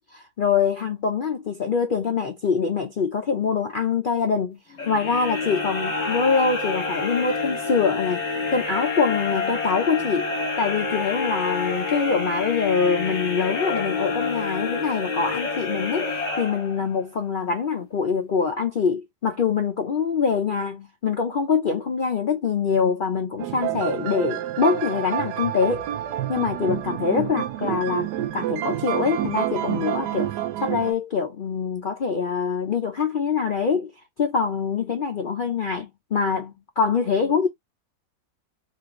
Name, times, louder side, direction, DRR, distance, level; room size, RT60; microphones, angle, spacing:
voice 1, 0.1-4.6 4.9-10.3 10.6-16.1 16.4-25.9 26.3-33.9 34.2-37.5, left 5 dB, 85° left, 0.4 m, -24 dB
sound 1, 4.8-17.0, left 3 dB, 45° left, 1.6 m, -28 dB
sound 2, 23.4-30.9, right 12 dB, 75° right, 1.2 m, -28 dB
4.3 x 2.5 x 2.9 m
omnidirectional pair, 1.8 m